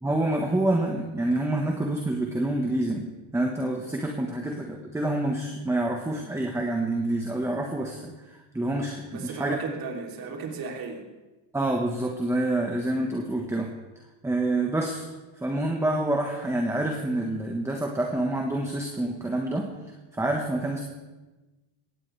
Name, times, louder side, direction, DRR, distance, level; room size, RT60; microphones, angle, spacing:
voice 1, 0.0-3.1 3.3-9.6 11.5-13.7 14.2-15.1 15.4-19.7 20.2-20.8, right 1 dB, 5° right, 1 dB, 1.4 m, -27 dB
voice 2, 9.1-11.0, right 5 dB, 45° right, 1 dB, 3.4 m, -35 dB
21.5 x 17.5 x 3.4 m, 1.2 s
cardioid pair, 140°, 48 cm